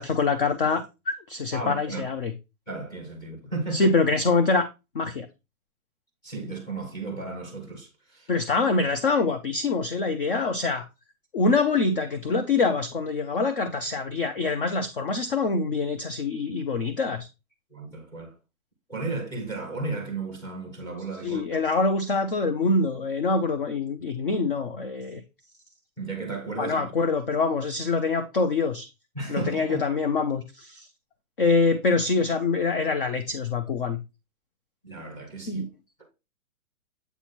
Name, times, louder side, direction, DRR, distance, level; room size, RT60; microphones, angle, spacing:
voice 1, 0.0-2.3 3.7-4.7 4.9-5.3 8.3-10.9 11.3-17.3 21.2-25.2 26.6-28.9 29.3-30.9 31.4-34.0 35.5-35.7, left 4 dB, 40° left, 0.5 m, -25 dB
voice 2, 1.5-2.0 2.7-3.9 6.2-8.3 17.7-18.4 18.9-21.6 26.0-26.9 29.1-29.8 34.8-35.6, right 3 dB, 10° left, 1.3 m, -34 dB
8.0 x 2.9 x 4.1 m
hypercardioid pair, 170°, 43 cm